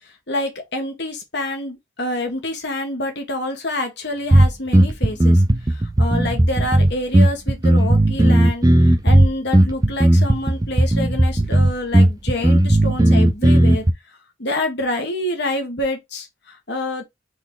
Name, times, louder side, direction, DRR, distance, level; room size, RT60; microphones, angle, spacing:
voice 1, 0.3-5.4 6.0-13.9 14.4-17.0, left 1 dB, 55° left, 1.4 m, -27 dB
sound 1, 4.3-13.9, right 1 dB, 20° right, 0.5 m, -15 dB
3.9 x 3.5 x 3.8 m
head